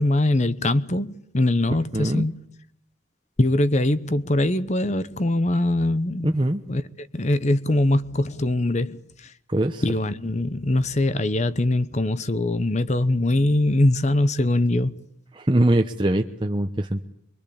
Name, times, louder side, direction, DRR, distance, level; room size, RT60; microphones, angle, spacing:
voice 1, 0.0-2.4 3.4-6.4 6.7-9.3 9.8-14.9, left 1 dB, 35° left, 1.0 m, -22 dB
voice 2, 1.9-2.3 6.2-6.6 9.5-9.8 15.3-17.0, right 1 dB, 25° right, 1.0 m, -22 dB
24.5 x 23.0 x 8.7 m
head